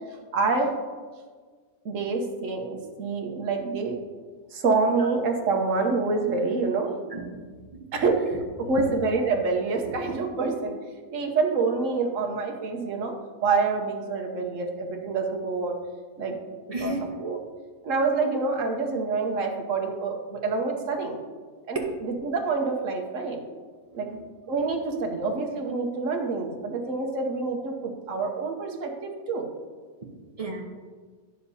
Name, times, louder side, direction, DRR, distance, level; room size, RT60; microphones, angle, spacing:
voice 1, 0.3-0.7 1.8-4.0 4.5-6.9 7.9-10.8 11.1-13.1 13.4-15.8 16.2-16.4 16.8-16.9 17.2-17.4 17.8-21.2 21.7-23.4 23.9-24.1 24.5-29.5, right 4 dB, 55° right, 3 dB, 1.1 m, -27 dB
voice 2, 7.1-7.8 8.6-8.7 16.7-17.1 23.9-24.2 30.4-30.6, right 2 dB, 30° right, 1 dB, 0.7 m, -34 dB
9.9 x 7.1 x 2.7 m, 1.5 s
omnidirectional pair, 1.7 m